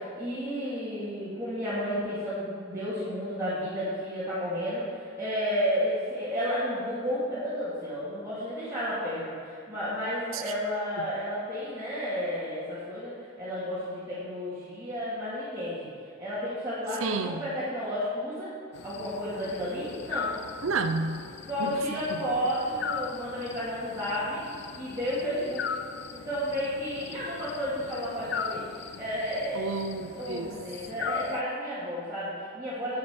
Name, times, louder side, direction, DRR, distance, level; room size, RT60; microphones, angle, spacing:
voice 1, 0.0-13.1 13.4-15.9 16.2-18.5 18.8-20.3 21.5-24.4 24.7-25.6 26.1-28.6 29.0-29.8 30.1-33.0, equal, 15° right, -12 dB, 2.2 m, -32 dB
voice 2, 17.0-17.4 20.6-21.3 21.6-22.2 29.5-30.6, right 4 dB, 70° right, 7 dB, 0.7 m, -31 dB
sound 1, 18.7-31.4, left 6 dB, 50° left, 0.4 m, -39 dB
8.8 x 8.5 x 6.0 m, 2.4 s
head